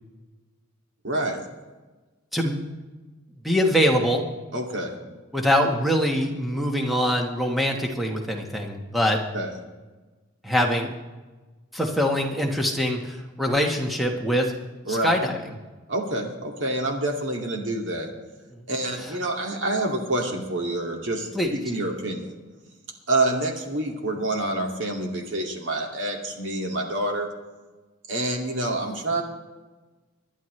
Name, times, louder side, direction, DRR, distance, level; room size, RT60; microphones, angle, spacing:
voice 1, 1.0-1.4 4.5-5.0 9.3-9.6 14.9-15.1 15.9-18.1 18.7-22.3 23.1-27.3 28.1-29.2, right 1 dB, 55° right, 1 dB, 2.3 m, -27 dB
voice 2, 2.3-2.6 3.4-4.3 5.3-9.2 10.4-10.9 11.7-14.5 14.9-15.4 21.3-21.5, equal, ahead, 1 dB, 1.3 m, -23 dB
26.0 x 11.0 x 3.3 m, 1.3 s
head